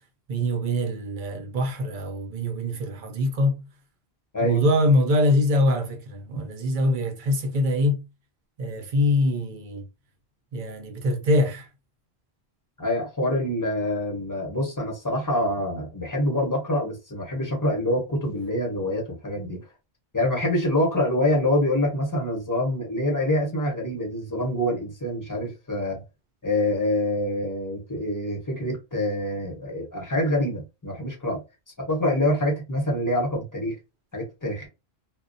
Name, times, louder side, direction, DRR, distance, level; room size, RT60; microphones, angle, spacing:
voice 1, 0.3-3.6 4.4-8.0 8.6-9.8 10.5-11.7, left 1 dB, 55° right, 0.7 m, -23 dB
voice 2, 12.8-19.6 20.1-26.0 26.4-31.4 31.9-33.8 34.1-34.7, left 1 dB, 20° left, 0.8 m, -26 dB
2.3 x 2.1 x 2.5 m
omnidirectional pair, 1.1 m